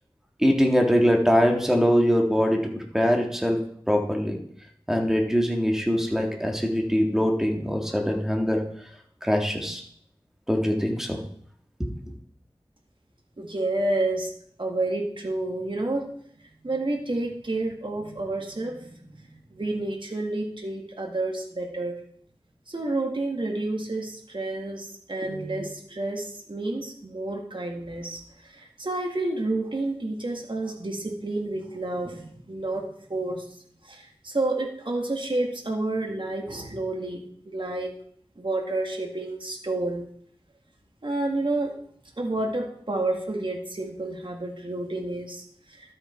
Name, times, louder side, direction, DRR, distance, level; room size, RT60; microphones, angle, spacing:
voice 1, 0.4-3.6 3.9-4.4 4.9-8.6 9.2-9.8 10.5-11.2 11.8-11.9, equal, 5° right, 1 dB, 1.9 m, -22 dB
voice 2, 13.4-14.3 14.6-16.1 16.6-22.0 22.7-33.5 33.8-37.3 37.5-37.9 38.4-40.1 41.0-41.7 42.2-45.9, right 2 dB, 60° right, 2 dB, 2.0 m, -30 dB
12.0 x 6.7 x 4.5 m, 0.64 s
wide cardioid pair, 55°, 10 cm